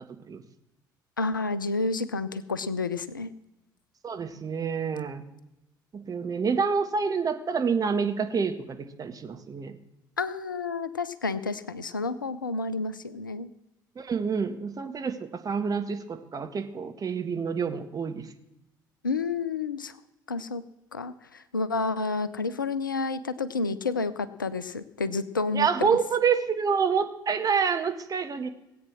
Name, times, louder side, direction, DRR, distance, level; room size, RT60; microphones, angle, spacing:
voice 1, 1.2-3.3 10.2-13.5 19.0-20.0 20.3-20.6 20.9-26.0, left 4 dB, 85° left, 15 dB, 0.5 m, -30 dB
voice 2, 4.0-5.2 5.9-9.7 14.0-15.2 15.4-18.2 25.5-28.5, right 6 dB, 35° right, 7 dB, 1.5 m, -27 dB
17.0 x 8.6 x 6.1 m, 0.90 s
figure-of-eight pair, 50°, 11 cm